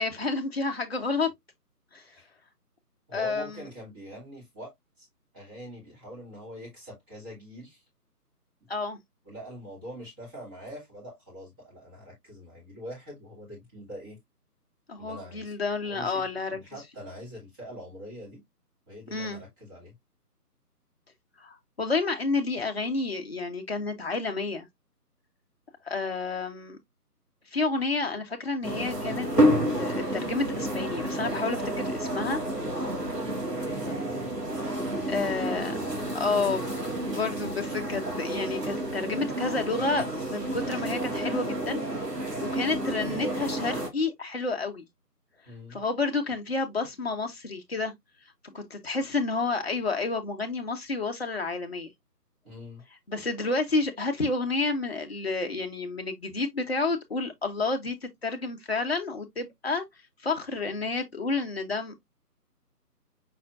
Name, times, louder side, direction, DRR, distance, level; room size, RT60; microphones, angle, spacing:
voice 1, 0.0-1.3 1.9-2.0 3.1-3.6 8.7-9.0 14.9-16.6 19.1-19.4 21.4-24.7 25.8-26.8 27.5-29.5 29.8-32.4 33.8-33.9 35.1-35.9 36.1-41.8 42.4-44.8 45.7-47.9 48.5-51.9 53.1-59.8 60.2-61.9, left 3 dB, 40° left, 1.0 m, -30 dB
voice 2, 3.1-5.1 5.3-7.8 8.6-8.7 9.2-14.2 15.0-15.5 15.8-18.4 18.9-19.9 33.2-34.9 45.5-45.8 52.4-52.8, equal, 15° right, 2.1 m, -44 dB
sound 1, 28.6-43.9, right 1 dB, 75° right, 2.0 m, -30 dB
5.8 x 3.8 x 2.4 m
figure-of-eight pair, 150°, 48 cm